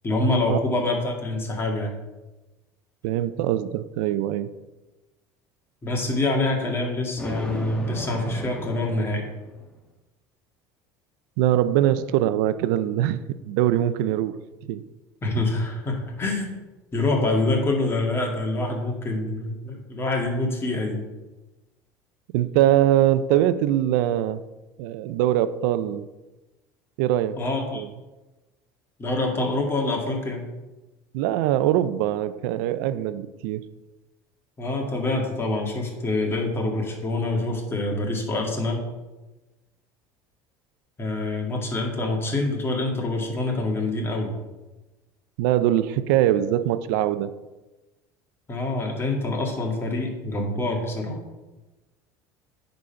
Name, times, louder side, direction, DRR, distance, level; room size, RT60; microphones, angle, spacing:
voice 1, 0.0-2.0 5.8-9.3 15.2-16.5 16.9-21.0 27.4-27.8 29.0-30.5 34.6-38.8 41.0-44.3 48.5-51.2, left 2 dB, 25° left, 0 dB, 2.2 m, -26 dB
voice 2, 3.0-4.6 11.4-14.3 14.7-14.8 22.3-24.4 24.8-26.1 27.0-27.4 27.7-27.9 31.1-33.6 45.4-47.4, right 12 dB, 80° right, 14 dB, 0.5 m, -22 dB
Thunder, 7.2-9.7, equal, 10° left, 1.4 m, -35 dB
9.6 x 4.1 x 5.8 m, 1.1 s
supercardioid pair, 110°, 10 cm